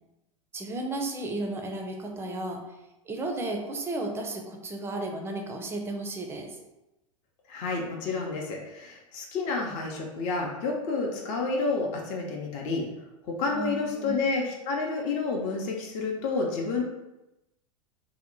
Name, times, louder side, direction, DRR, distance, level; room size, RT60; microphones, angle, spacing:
voice 1, 0.5-2.8 3.1-6.6 13.4-14.2, right 2 dB, 15° right, 3 dB, 0.5 m, -34 dB
voice 2, 7.5-12.8 13.3-16.8, left 3 dB, 45° left, 0 dB, 0.6 m, -30 dB
2.8 x 2.1 x 3.9 m, 0.96 s
figure-of-eight pair, 90°, 18 cm